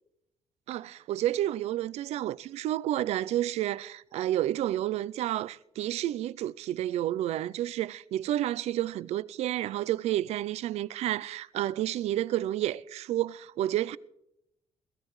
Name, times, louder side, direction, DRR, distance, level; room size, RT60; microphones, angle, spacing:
voice 1, 0.7-14.0, right 13 dB, 75° right, 0.4 m, -30 dB
21.0 x 13.5 x 3.1 m
cardioid pair, 125°, 11 cm